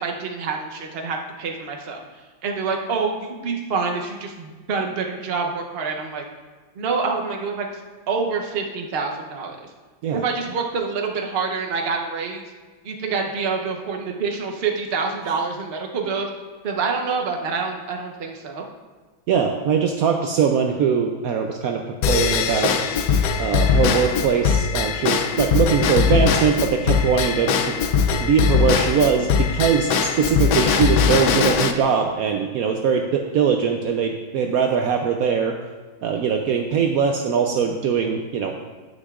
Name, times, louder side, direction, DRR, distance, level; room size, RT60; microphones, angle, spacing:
voice 1, 0.0-2.0 2.4-6.2 6.7-7.8 8.1-9.7 10.1-12.5 12.8-16.3 16.6-18.7, right 4 dB, 50° right, 2 dB, 0.7 m, -26 dB
voice 2, 19.3-22.7 23.4-27.7 28.1-35.5 36.0-38.5, right 6 dB, 80° right, 3 dB, 0.8 m, -21 dB
Drum kit / Drum / Bell, 22.0-31.7, left 6 dB, 70° left, 0.9 m, -21 dB
9.7 x 8.9 x 2.4 m, 1.3 s
omnidirectional pair, 2.1 m